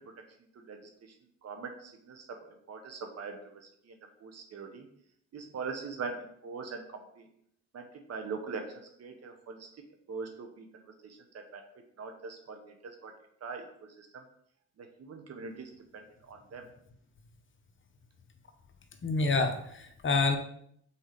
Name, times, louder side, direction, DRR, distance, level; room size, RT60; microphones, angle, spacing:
voice 1, 1.4-3.4 3.9-4.0 4.2-4.9 5.3-7.3 7.7-8.7 9.0-9.7 10.1-10.6 11.0-11.6 12.0-13.1 13.4-13.6 14.0-14.1 14.8-16.6, right 4 dB, 55° right, 5 dB, 1.1 m, -42 dB
voice 2, 19.0-20.4, left 3 dB, 40° left, 6 dB, 0.9 m, -27 dB
5.8 x 4.6 x 5.2 m, 0.69 s
cardioid pair, 90°, 30 cm